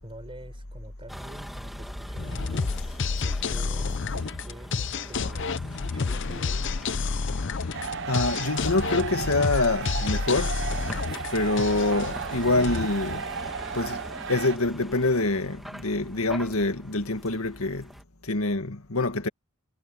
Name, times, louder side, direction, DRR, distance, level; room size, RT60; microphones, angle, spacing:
voice 1, 0.0-2.8 3.2-6.7, right 1 dB, 25° right, 4.5 m, -46 dB
Vehicle, 1.1-18.0, equal, ahead, 1.5 m, -42 dB
sound 1, 2.2-13.8, left 4 dB, 55° left, 0.6 m, -30 dB
sound 2, 7.7-14.6, right 6 dB, 55° right, 0.6 m, -34 dB
voice 2, 8.1-10.5 11.3-13.2 13.7-14.0 14.3-17.9 18.3-19.3, left 2 dB, 85° left, 1.9 m, -25 dB
head